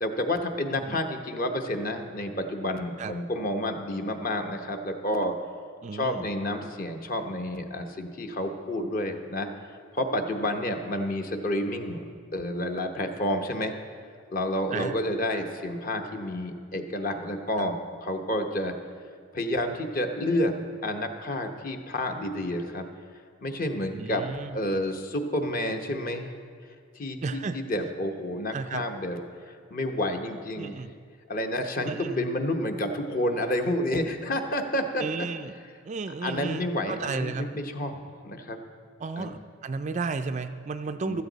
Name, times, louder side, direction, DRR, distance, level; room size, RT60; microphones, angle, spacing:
voice 1, 0.0-5.3 5.9-9.5 9.9-12.0 12.3-13.7 14.3-18.7 19.3-22.9 23.4-24.3 24.5-26.3 26.9-27.2 27.5-30.8 31.3-35.3 36.2-38.6 39.2-39.3 41.1-41.2, left 1 dB, 40° left, 5 dB, 0.9 m, -30 dB
voice 2, 5.8-6.3 14.7-15.0 17.6-17.7 23.9-24.6 27.2-27.6 28.5-28.9 30.6-30.9 31.8-32.3 35.0-35.5 35.8-37.5 39.0-41.2, right 4 dB, 35° right, 9 dB, 0.3 m, -33 dB
15.5 x 13.0 x 4.0 m, 2.2 s
head